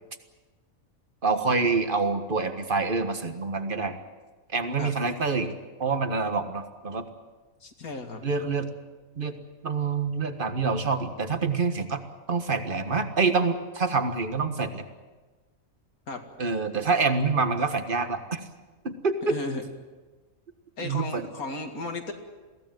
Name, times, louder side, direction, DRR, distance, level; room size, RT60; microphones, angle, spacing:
voice 1, 1.2-4.0 4.5-5.5 5.8-7.0 8.2-8.7 9.2-9.3 9.6-12.0 12.3-14.8 16.4-18.4 18.8-19.4 20.8-21.3, right 4 dB, 40° right, 8 dB, 1.7 m, -26 dB
voice 2, 7.6-8.2 16.1-16.2 19.3-19.7 20.8-22.1, left 3 dB, 90° left, 4 dB, 2.7 m, -35 dB
22.5 x 16.5 x 9.3 m, 1.3 s
omnidirectional pair, 1.5 m